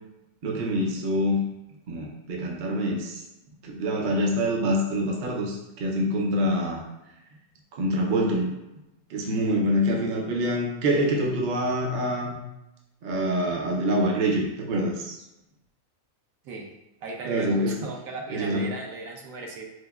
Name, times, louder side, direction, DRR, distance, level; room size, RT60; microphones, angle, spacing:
voice 1, 0.4-1.5 1.9-3.2 3.6-6.8 7.7-8.5 9.1-12.4 13.0-15.2 17.2-17.8 18.3-18.7, equal, 60° right, -2 dB, 0.5 m, -25 dB
voice 2, 17.0-19.7, right 3 dB, 75° right, 1 dB, 1.0 m, -37 dB
4.7 x 2.1 x 2.3 m, 0.97 s
omnidirectional pair, 1.5 m